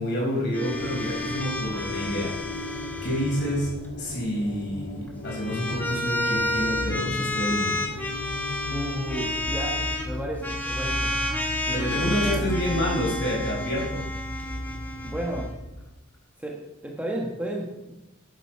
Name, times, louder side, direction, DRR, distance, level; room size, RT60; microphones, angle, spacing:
voice 1, 0.0-2.4 3.0-7.8 11.7-14.0, equal, 55° left, -3 dB, 5.3 m, -28 dB
sound 1, 0.5-3.7 5.1-10.0 10.4-15.5, left 1 dB, 10° left, 1.5 m, -31 dB
sound 2, 0.7-15.8, left 1 dB, 75° left, 2.4 m, -36 dB
voice 2, 8.7-11.1 11.6-12.4 15.0-15.5 16.4-17.9, right 1 dB, 5° right, -1 dB, 1.3 m, -33 dB
11.5 x 8.1 x 5.8 m, 0.97 s
head